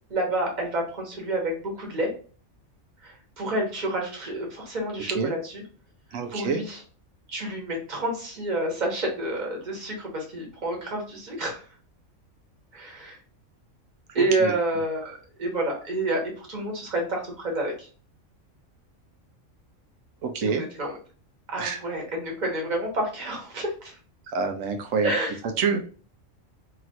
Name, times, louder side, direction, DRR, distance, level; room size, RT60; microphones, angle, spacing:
voice 1, 0.1-2.1 3.0-5.6 6.3-6.8 7.3-11.7 12.7-13.2 14.1-17.9 20.4-21.0 21.5-24.0 25.0-25.4, right 1 dB, 35° right, -1 dB, 1.3 m, -29 dB
voice 2, 6.1-6.6 14.4-14.5 20.2-20.6 21.6-21.8 24.3-25.1 25.6-25.8, right 5 dB, 80° right, 5 dB, 1.1 m, -26 dB
3.0 x 2.8 x 2.5 m, 0.39 s
omnidirectional pair, 1.4 m